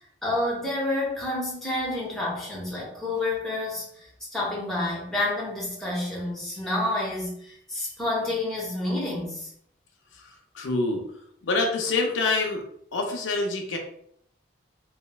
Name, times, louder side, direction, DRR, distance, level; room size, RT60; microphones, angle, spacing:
voice 1, 0.2-9.5, left 1 dB, 5° left, -5 dB, 0.7 m, -29 dB
voice 2, 10.5-11.0 11.4-12.6 12.9-13.8, left 3 dB, 75° left, 2 dB, 0.4 m, -26 dB
2.9 x 2.0 x 2.2 m, 0.67 s
head